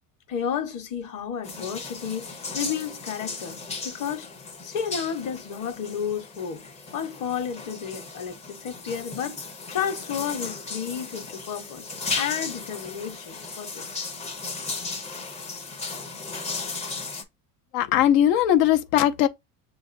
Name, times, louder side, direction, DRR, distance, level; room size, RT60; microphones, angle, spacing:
voice 1, 0.3-3.6 3.8-4.3 4.6-6.6 6.9-11.9 12.2-13.9, left 8 dB, 40° left, 0.9 m, -32 dB
sound 1, 1.4-17.2, left 4 dB, 15° left, 0.4 m, -36 dB
voice 2, 17.7-19.3, left 11 dB, 85° left, 0.7 m, -19 dB
6.6 x 2.5 x 2.5 m
cardioid pair, 145°, 46 cm